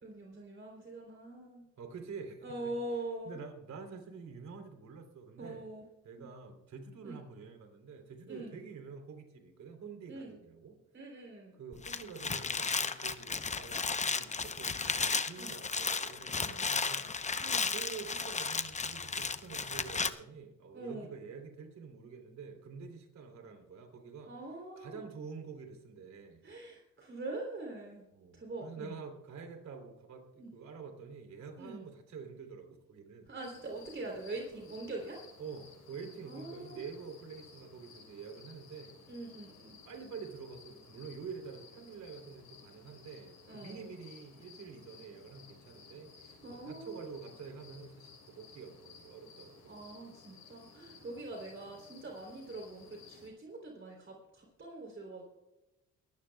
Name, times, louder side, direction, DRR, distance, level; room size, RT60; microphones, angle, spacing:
voice 1, 0.0-1.7 2.4-3.4 5.4-5.8 6.2-6.3 7.0-7.2 8.3-8.6 10.1-10.4 10.9-11.5 15.4-15.5 16.4-16.7 17.4-17.7 20.7-21.1 24.3-25.0 26.4-28.0 28.3-28.9 30.4-30.5 31.6-31.8 33.3-35.2 36.2-36.8 39.1-39.8 43.5-44.0 46.4-47.1 49.7-55.2, right 2 dB, 40° right, 0 dB, 3.5 m, -43 dB
voice 2, 1.8-2.7 3.2-5.6 6.0-10.8 11.5-17.1 17.7-24.3 24.7-26.4 28.1-33.3 35.4-39.0 39.8-49.8 51.0-51.2, right 5 dB, 65° right, 5 dB, 3.4 m, -47 dB
sound 1, 11.7-20.1, left 4 dB, 25° left, 0.8 m, -34 dB
sound 2, 33.4-53.3, left 5 dB, 75° left, 5.9 m, -57 dB
22.0 x 16.0 x 2.3 m, 0.96 s
cardioid pair, 90°, 30 cm